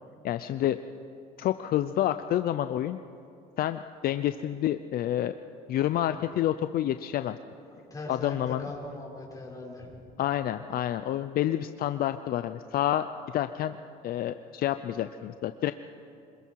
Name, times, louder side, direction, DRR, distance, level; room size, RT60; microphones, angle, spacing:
voice 1, 0.2-0.8 1.4-3.0 3.6-5.3 5.7-7.4 8.1-8.7 10.2-13.1 13.3-13.8 14.0-15.7, left 12 dB, 60° left, 10 dB, 0.6 m, -28 dB
voice 2, 7.6-10.0, left 2 dB, 20° left, -3 dB, 5.5 m, -41 dB
25.5 x 21.5 x 4.7 m, 2.5 s
cardioid pair, 110°, 17 cm